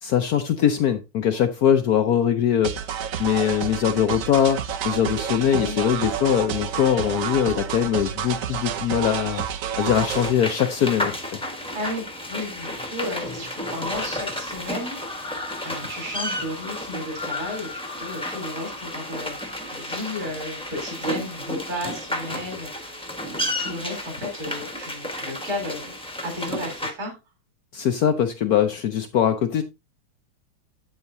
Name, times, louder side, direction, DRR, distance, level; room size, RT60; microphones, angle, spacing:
voice 1, 0.0-2.9 3.2-9.5 9.8-11.4 27.7-29.6, left 9 dB, 75° left, 0.8 m, -22 dB
sound 1, 2.6-10.3, right 8 dB, 85° right, 0.7 m, -29 dB
sound 2, 9.9-26.9, left 1 dB, 5° left, 0.9 m, -32 dB
voice 2, 11.7-15.0 15.6-25.9 26.2-27.2, left 1 dB, 45° right, 3.9 m, -33 dB
8.8 x 7.6 x 2.6 m
omnidirectional pair, 2.4 m